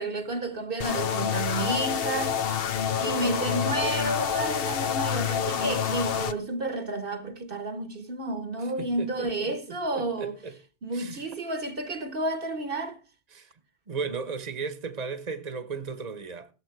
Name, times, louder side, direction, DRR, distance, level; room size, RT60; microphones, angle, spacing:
voice 1, 0.0-2.6 3.0-10.4 10.8-13.0, right 2 dB, 55° right, 1.4 m, -31 dB
sound 1, 0.8-6.3, left 8 dB, 60° left, 1.0 m, -28 dB
voice 2, 8.8-10.6 10.9-11.3 13.3-13.5 13.9-16.5, right 5 dB, 40° right, 1.3 m, -36 dB
15.5 x 7.6 x 4.6 m
omnidirectional pair, 1.1 m